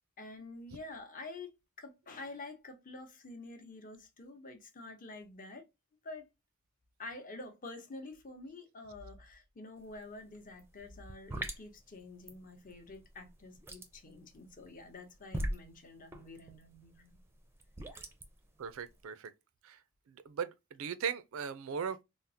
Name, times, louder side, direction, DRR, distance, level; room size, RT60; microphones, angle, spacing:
voice 1, 0.2-1.5 1.8-5.6 6.0-6.3 7.0-17.2 17.9-18.1, left 2 dB, 40° left, 0.8 m, -48 dB
sound 1, 9.8-10.0 10.3-19.0, right 1 dB, 10° right, 0.5 m, -42 dB
voice 2, 18.6-19.3 19.6-19.8 20.1-22.0, right 7 dB, 70° right, 0.4 m, -38 dB
3.5 x 2.0 x 2.7 m
head